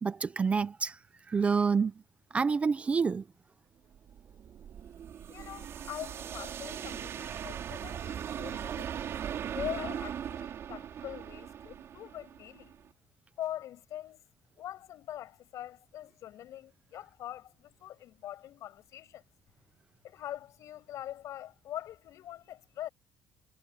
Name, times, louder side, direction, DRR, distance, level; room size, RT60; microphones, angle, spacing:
voice 1, 0.0-1.0 1.3-1.9 2.3-3.2, right 5 dB, 20° right, 0.5 m, -28 dB
sound 1, 3.9-12.9, right 9 dB, 40° right, 4.5 m, -39 dB
voice 2, 5.3-8.9 9.5-12.8 13.4-14.3 14.6-19.2 20.0-22.9, left 12 dB, 50° left, 7.9 m, -43 dB
cardioid pair, 170°, 7 cm